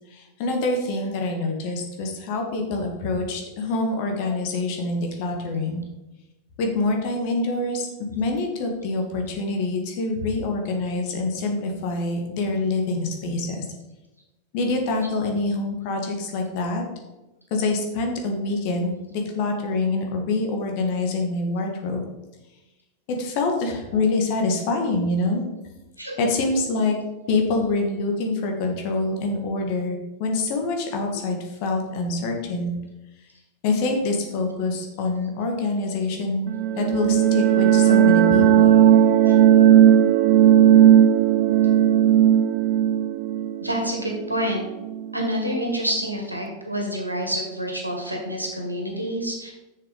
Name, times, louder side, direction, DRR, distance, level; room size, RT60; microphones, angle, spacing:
voice 1, 0.1-5.8 6.6-13.6 14.5-16.8 17.5-22.0 23.1-25.4 26.2-27.0 27.3-32.7 33.6-36.5 36.8-38.8, left 3 dB, 45° left, 2 dB, 2.0 m, -25 dB
sound 1, 36.5-45.0, right 10 dB, 45° right, 0.6 m, -16 dB
voice 2, 43.6-44.7 45.1-49.5, equal, 85° right, 1 dB, 1.9 m, -28 dB
6.9 x 6.7 x 5.5 m, 1.0 s
figure-of-eight pair, 90°, 0 cm